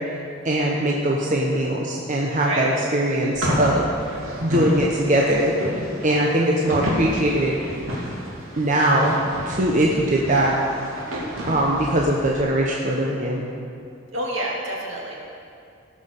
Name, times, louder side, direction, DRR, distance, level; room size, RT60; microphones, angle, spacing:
voice 1, 0.4-3.8 4.4-5.5 6.0-7.6 8.6-9.1 9.5-10.6 11.5-13.4, right 1 dB, 40° right, -3 dB, 1.1 m, -21 dB
sound 1, 3.3-12.4, equal, 85° right, 2.9 m, -30 dB
voice 2, 14.1-15.1, right 1 dB, 70° right, -3 dB, 2.7 m, -27 dB
18.0 x 6.1 x 6.9 m, 2.4 s
head